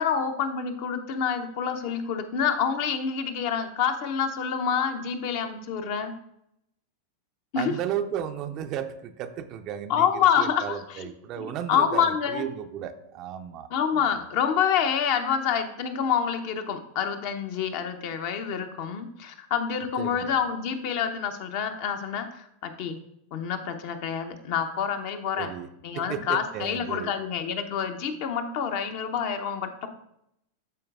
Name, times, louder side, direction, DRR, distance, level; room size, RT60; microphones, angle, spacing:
voice 1, 0.0-6.1 7.5-7.7 9.9-11.1 11.4-12.4 13.7-23.0 23.3-25.5 25.8-29.9, left 7 dB, 45° left, 6 dB, 0.8 m, -27 dB
voice 2, 7.6-14.2 20.0-20.3 25.4-27.2, right 9 dB, 35° right, 9 dB, 0.5 m, -34 dB
12.0 x 4.5 x 2.5 m, 0.77 s
figure-of-eight pair, 90°, 0 cm